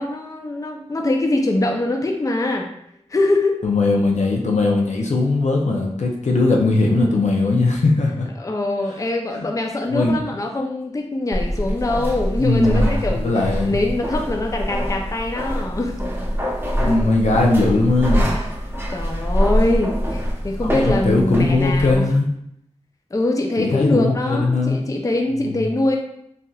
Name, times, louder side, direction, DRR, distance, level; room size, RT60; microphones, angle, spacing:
voice 1, 0.0-2.7 3.1-3.6 8.4-15.9 18.9-22.1 23.1-26.0, left 2 dB, 30° left, 2 dB, 0.4 m, -23 dB
voice 2, 3.6-8.3 9.3-9.5 9.9-10.1 12.4-13.8 16.8-18.3 20.6-22.3 23.6-24.8 25.4-25.7, left 2 dB, 80° left, 0 dB, 0.5 m, -19 dB
sound 1, 11.3-22.0, equal, 20° right, 0.7 m, -24 dB
3.2 x 2.7 x 2.3 m, 0.74 s
wide cardioid pair, 65°, 12 cm